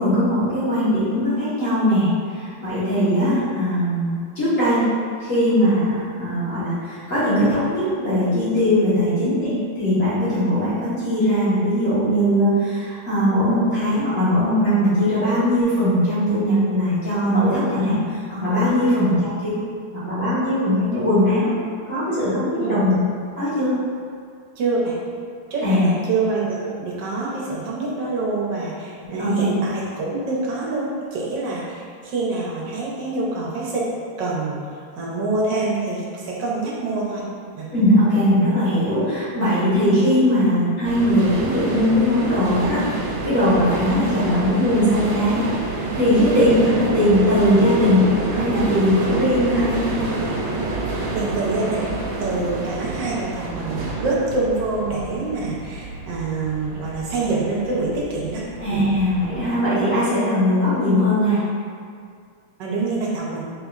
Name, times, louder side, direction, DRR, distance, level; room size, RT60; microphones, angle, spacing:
voice 1, 0.0-4.9 5.2-19.3 19.9-21.5 21.9-22.9 23.4-23.7 25.6-25.9 29.2-29.5 37.7-42.8 43.2-45.5 45.9-48.0 48.3-49.8 58.6-61.4, equal, 45° left, -13 dB, 1.5 m, -20 dB
voice 2, 24.6-25.0 25.5-33.9 34.2-34.6 35.0-37.2 37.5-37.7 46.4-46.5 51.1-51.9 52.2-58.8 62.6-63.5, right 3 dB, 65° right, -5 dB, 1.3 m, -26 dB
sound 1, 40.8-59.4, right 2 dB, 90° right, 1.5 m, -28 dB
4.0 x 3.7 x 2.4 m, 2.2 s
omnidirectional pair, 2.3 m